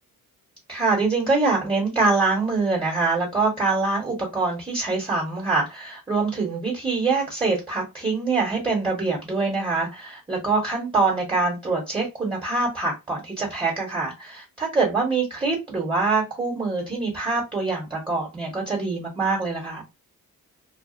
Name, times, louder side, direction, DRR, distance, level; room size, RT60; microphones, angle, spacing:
voice 1, 0.7-19.8, right 3 dB, 15° right, 1.2 m, -24 dB
2.4 x 2.4 x 2.4 m
cardioid pair, 115°, 34 cm